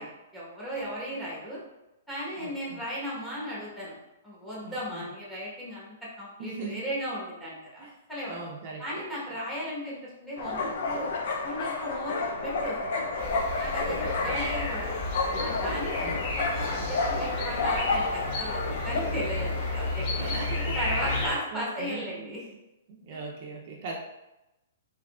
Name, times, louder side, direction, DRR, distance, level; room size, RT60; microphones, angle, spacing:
voice 1, 0.0-1.6 2.1-3.9 4.2-8.4 8.8-11.1 11.4-12.2 12.4-13.1 13.6-14.9 15.4-20.3 20.7-22.5 23.1-23.2, equal, 5° left, -7 dB, 1.1 m, -36 dB
voice 2, 2.4-2.8 4.6-5.0 6.4-6.8 7.8-7.9 8.2-9.0 13.9-14.4 16.0-16.4 20.2-22.5 22.9-24.0, right 3 dB, 50° right, -2 dB, 0.5 m, -40 dB
sound 1, 10.4-19.0, left 3 dB, 60° left, 0.5 m, -31 dB
sound 2, 13.2-21.3, left 2 dB, 40° left, 1.0 m, -31 dB
3.5 x 2.8 x 2.3 m, 0.96 s
hypercardioid pair, 140°, 0 cm